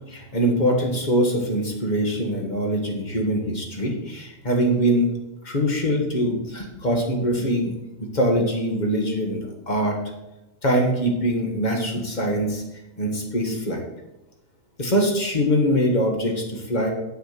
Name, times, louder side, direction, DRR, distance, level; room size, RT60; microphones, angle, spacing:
voice 1, 0.0-5.1 5.4-7.7 8.0-10.0 10.6-12.6 13.0-13.8 14.8-16.9, equal, 35° left, 2 dB, 1.6 m, -23 dB
7.7 x 6.3 x 5.9 m, 0.95 s
omnidirectional pair, 1.4 m